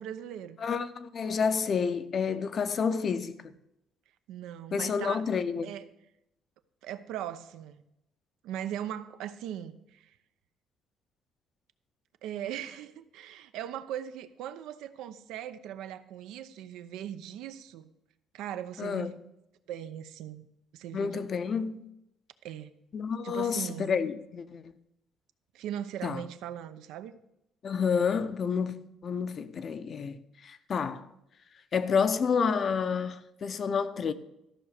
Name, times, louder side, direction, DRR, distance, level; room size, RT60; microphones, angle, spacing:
voice 1, 0.0-0.6 4.3-5.2 5.6-5.9 6.8-7.8 8.4-10.1 12.2-17.9 18.3-19.2 19.7-20.5 20.7-21.2 22.4-22.7 23.2-24.0 25.5-27.2, right 10 dB, 85° right, 0.7 m, -39 dB
voice 2, 0.6-3.4 4.7-5.7 18.8-19.2 20.9-21.8 22.9-24.7 26.0-26.2 27.6-31.1 31.7-34.1, left 6 dB, 35° left, 0.6 m, -29 dB
13.5 x 6.0 x 6.6 m
cardioid pair, 165°, 0 cm